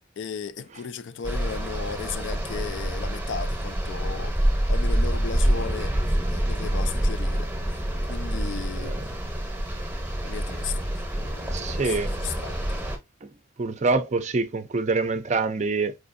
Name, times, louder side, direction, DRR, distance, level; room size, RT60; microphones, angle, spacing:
voice 1, 0.0-4.4 4.7-9.0 10.2-10.7 11.2-12.0 12.2-12.8, left 6 dB, 60° left, 0.4 m, -36 dB
sound 1, 1.2-13.0, right 1 dB, 10° right, 0.8 m, -27 dB
voice 2, 11.2-12.3 13.2-13.3 13.6-16.0, right 3 dB, 35° right, 0.5 m, -26 dB
4.7 x 2.6 x 2.5 m
head